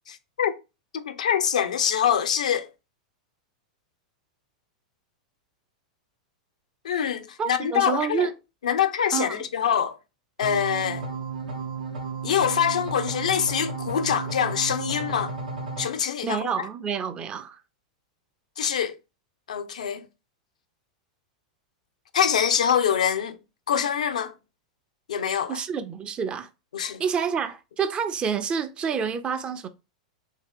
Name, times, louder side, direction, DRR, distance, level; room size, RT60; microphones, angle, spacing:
voice 1, 0.1-0.5 0.9-2.7 6.8-8.3 8.6-10.0 10.4-11.1 12.2-15.3 15.8-16.7 18.6-18.9 19.5-20.1 22.1-23.4 23.7-24.3 25.1-25.6 26.7-27.0, left 8 dB, 80° left, 0.4 m, -25 dB
voice 2, 7.4-8.3 9.1-9.4 16.2-17.6 25.5-26.5 27.0-29.7, right 7 dB, 25° right, 0.4 m, -28 dB
sound 1, 10.4-15.9, right 4 dB, 80° right, 0.7 m, -33 dB
2.9 x 2.8 x 3.3 m
hypercardioid pair, 105°, 4 cm